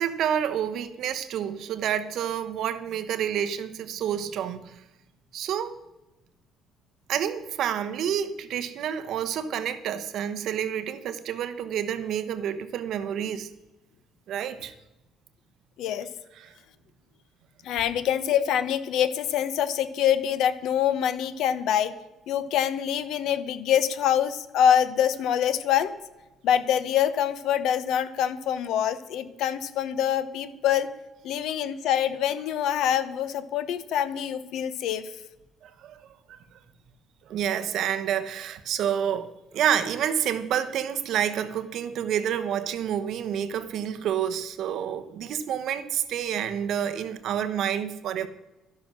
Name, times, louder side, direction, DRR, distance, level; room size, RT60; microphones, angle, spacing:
voice 1, 0.0-4.7 5.3-5.7 7.1-13.5 14.3-14.7 16.4-16.5 35.6-36.0 37.3-48.3, right 9 dB, 60° right, 1.0 m, -29 dB
voice 2, 15.8-16.1 17.6-22.0 22.3-26.0 26.4-30.9 31.2-35.1, left 9 dB, 70° left, 1.0 m, -25 dB
12.5 x 11.0 x 6.1 m
cardioid pair, 165°, 0 cm